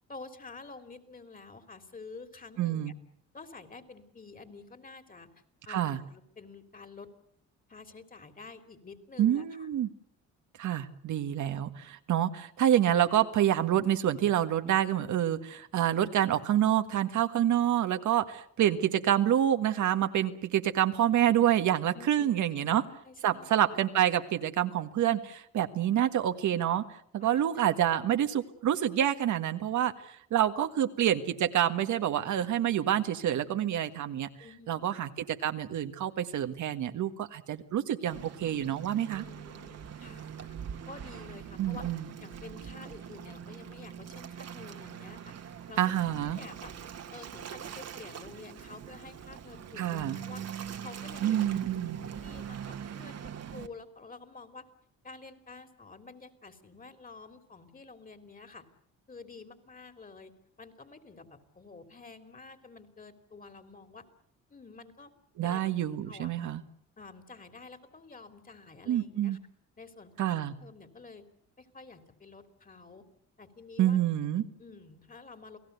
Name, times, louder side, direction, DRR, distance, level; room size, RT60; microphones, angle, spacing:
voice 1, 0.1-2.8 3.3-5.3 5.6-7.1 7.7-9.7 21.9-22.3 22.6-23.6 27.2-27.4 34.4-34.9 39.1-40.6 40.9-41.8 42.2-45.3 45.7-45.8 46.2-46.7 47.1-50.6 50.8-51.4 51.7-51.8 52.1-52.6 52.9-53.2 53.5-54.7 55.0-58.6 59.1-60.3 60.6-64.0 64.5-65.1 65.4-65.6 65.9-66.3 67.0-69.4 69.8-71.3 71.6-73.0 73.4-74.0 74.6-75.6, left 4 dB, 30° left, 9 dB, 3.4 m, -49 dB
voice 2, 2.6-2.9 5.7-6.0 9.2-9.9 10.6-22.8 23.2-26.8 27.1-34.3 34.7-39.2 41.6-42.1 45.8-46.4 49.8-50.2 51.2-52.0 65.4-66.6 68.9-69.4 70.2-70.5 73.8-74.4, right 11 dB, 75° right, 8 dB, 1.7 m, -27 dB
Waves surf, 38.1-53.7, right 8 dB, 55° right, 1.9 m, -43 dB
29.0 x 18.0 x 8.2 m, 0.67 s
cardioid pair, 90°, 30 cm